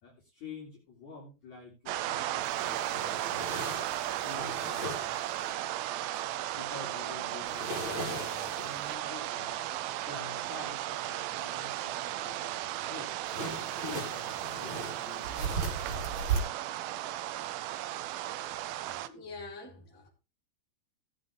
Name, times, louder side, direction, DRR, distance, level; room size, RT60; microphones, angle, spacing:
voice 1, 0.0-3.8 4.2-5.1 6.5-9.6 10.0-12.6 12.9-13.1 13.8-15.7, left 4 dB, 45° left, 3.8 m, -48 dB
sound 1, 1.9-19.1, right 13 dB, 80° right, 2.2 m, -35 dB
sound 2, 2.4-5.5 7.5-8.9 13.3-16.4, right 3 dB, 30° right, 4.8 m, -37 dB
voice 2, 19.1-20.1, left 3 dB, 20° left, 4.1 m, -45 dB
17.5 x 7.9 x 3.4 m
omnidirectional pair, 4.9 m